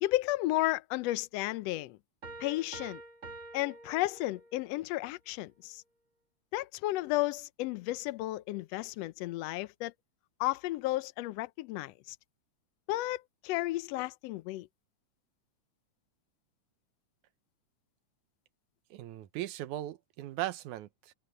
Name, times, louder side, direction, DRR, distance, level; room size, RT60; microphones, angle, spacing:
voice 1, 0.0-2.0 2.4-3.0 3.5-5.8 6.5-9.9 10.4-12.2 12.9-14.7, left 17 dB, 75° left, 1.6 m, -33 dB
sound 1, 2.2-4.7, right 2 dB, 25° right, 2.8 m, -47 dB
voice 2, 18.9-21.1, right 14 dB, 75° right, 2.2 m, -38 dB
omnidirectional pair, 3.6 m